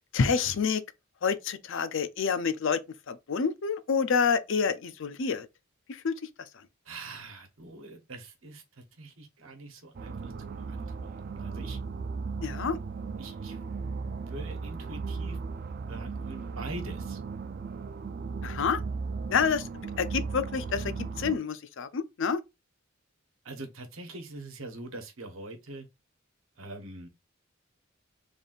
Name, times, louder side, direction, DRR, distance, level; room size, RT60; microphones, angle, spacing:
voice 1, 0.1-0.8 1.2-2.8 3.1-5.5 5.9-6.1 12.4-12.8 18.4-18.8 19.3-19.7 20.0-22.4, left 5 dB, 65° left, 0.5 m, -28 dB
voice 2, 6.8-11.8 13.2-13.7 14.2-15.4 15.9-17.2 23.4-25.9 26.6-27.1, right 2 dB, 80° right, 1.1 m, -44 dB
sound 1, 9.9-21.4, right 4 dB, 50° right, 0.4 m, -36 dB
3.5 x 2.5 x 3.9 m
head